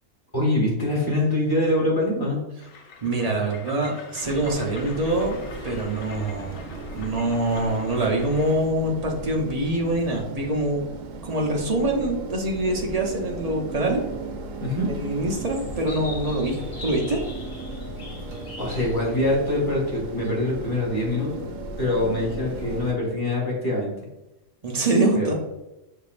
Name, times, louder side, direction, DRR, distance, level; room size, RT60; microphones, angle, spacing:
voice 1, 0.3-2.4 14.6-14.9 18.6-21.4 21.8-23.9 25.1-25.3, left 1 dB, 15° left, -4 dB, 1.5 m, -24 dB
Train, 2.6-8.7, left 5 dB, 90° left, 1.0 m, -44 dB
voice 2, 3.0-5.4 5.6-10.9 11.2-14.0 14.8-17.2 24.6-25.3, right 1 dB, 40° right, 0 dB, 0.6 m, -25 dB
sound 1, 4.2-22.9, right 2 dB, 75° right, 1.0 m, -36 dB
sound 2, 15.3-20.3, left 3 dB, 40° left, 1.0 m, -43 dB
6.7 x 2.7 x 2.4 m, 0.95 s
omnidirectional pair, 1.3 m